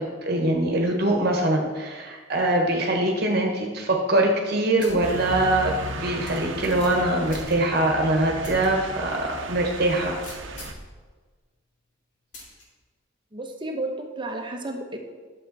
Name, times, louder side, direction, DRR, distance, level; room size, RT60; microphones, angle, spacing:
voice 1, 0.0-10.2, right 1 dB, 50° right, 1 dB, 1.3 m, -23 dB
sound 1, 4.8-5.1 5.5-5.6 6.3-7.9 8.4-8.7 9.1-9.2 10.2-10.9 12.3-12.6, left 1 dB, 60° left, 2.8 m, -42 dB
sound 2, 5.0-10.7, right 2 dB, 70° right, 0.9 m, -35 dB
voice 2, 13.3-15.0, right 2 dB, 25° right, 3 dB, 1.0 m, -32 dB
11.0 x 7.4 x 4.1 m, 1.4 s
head